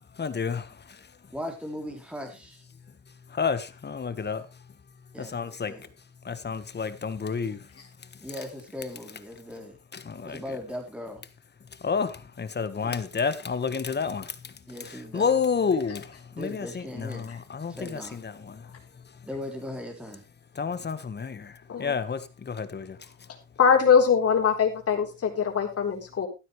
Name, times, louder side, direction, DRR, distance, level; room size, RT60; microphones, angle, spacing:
voice 1, 0.2-0.7 3.3-4.5 5.2-5.7 6.2-7.6 9.9-10.4 11.8-14.5 14.8-18.6 20.5-23.0, left 6 dB, 35° left, 1.4 m, -30 dB
voice 2, 1.3-2.6 5.1-5.9 8.2-9.8 10.2-11.2 12.8-13.0 14.7-15.3 16.3-17.3 17.7-18.2 19.3-20.2, left 1 dB, 5° right, 3.3 m, -38 dB
voice 3, 23.6-26.3, left 6 dB, 50° left, 3.9 m, -22 dB
13.5 x 12.0 x 3.3 m
cardioid pair, 90°, 30 cm